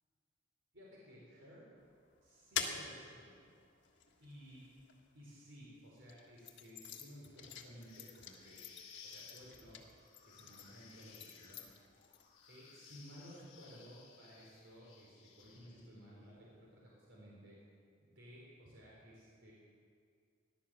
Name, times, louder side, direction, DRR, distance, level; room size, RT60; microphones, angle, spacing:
voice 1, 0.7-1.7 2.2-3.5 4.2-4.7 5.1-8.6 9.0-9.8 10.2-11.6 12.5-17.6 18.0-19.5, equal, 70° right, -5 dB, 4.2 m, -56 dB
sound 1, 1.8-5.4 6.0-12.3, left 7 dB, 65° left, 1.6 m, -47 dB
sound 2, 7.8-16.1, left 5 dB, 35° left, 3.0 m, -59 dB
17.0 x 11.5 x 7.5 m, 2.2 s
head